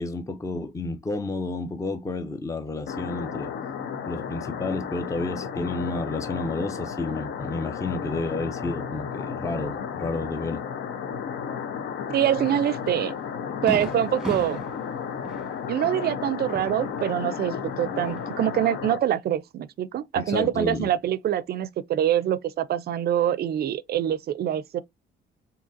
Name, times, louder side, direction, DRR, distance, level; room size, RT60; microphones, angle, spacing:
voice 1, 0.0-3.5 4.0-10.6 20.2-20.9, left 3 dB, 15° left, 0.5 m, -31 dB
sound 1, 2.9-19.0, left 7 dB, 70° left, 0.7 m, -33 dB
voice 2, 12.1-13.1 13.6-14.6 15.7-24.8, right 10 dB, 55° right, 0.4 m, -25 dB
Fireworks, 12.6-12.8 13.2-13.3 13.7-17.4 17.8-18.6, right 1 dB, 5° right, 1.2 m, -37 dB
3.7 x 2.7 x 2.5 m
cardioid pair, 90°, 20 cm